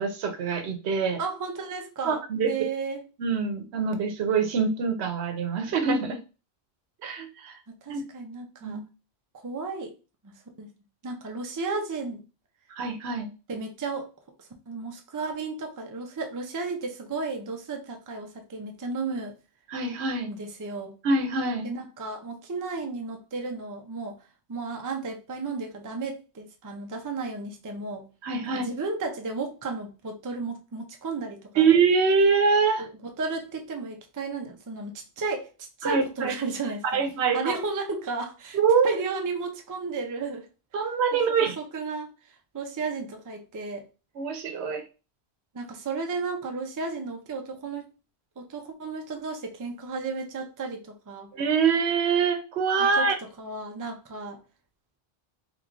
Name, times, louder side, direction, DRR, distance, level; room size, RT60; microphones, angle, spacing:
voice 1, 0.0-1.2 2.0-2.5 3.2-6.2 7.0-7.6 7.9-8.0 8.6-8.8 12.7-13.3 19.7-20.3 21.0-21.7 28.2-28.6 31.6-32.8 35.8-36.3 36.8-37.5 38.5-38.9 40.7-41.6 44.2-44.8 51.3-53.1, right 5 dB, 80° right, 7 dB, 0.9 m, -24 dB
voice 2, 1.2-3.0 7.7-8.8 9.3-9.9 10.2-10.7 11.0-12.2 13.5-14.1 14.4-19.3 20.3-20.9 21.6-28.1 28.4-31.7 32.8-35.5 35.8-37.0 37.3-38.6 38.8-40.5 41.1-43.9 45.5-47.9 48.4-51.3 52.8-54.4, right 4 dB, 30° right, 4 dB, 0.3 m, -34 dB
3.4 x 3.1 x 2.5 m, 0.32 s
omnidirectional pair, 1.1 m